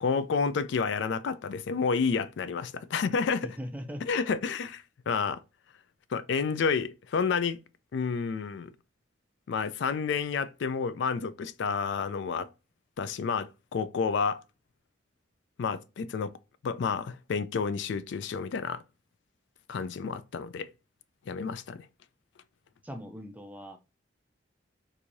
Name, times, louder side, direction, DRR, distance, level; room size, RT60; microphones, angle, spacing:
voice 1, 0.0-3.5 4.1-5.4 6.1-7.6 7.9-8.7 9.5-12.5 13.0-14.4 15.6-16.3 16.6-18.8 19.7-20.7 21.3-21.9, left 5 dB, 70° left, 0.3 m, -30 dB
voice 2, 3.4-4.2 22.8-23.8, equal, 10° right, 0.5 m, -40 dB
4.5 x 2.6 x 2.6 m
head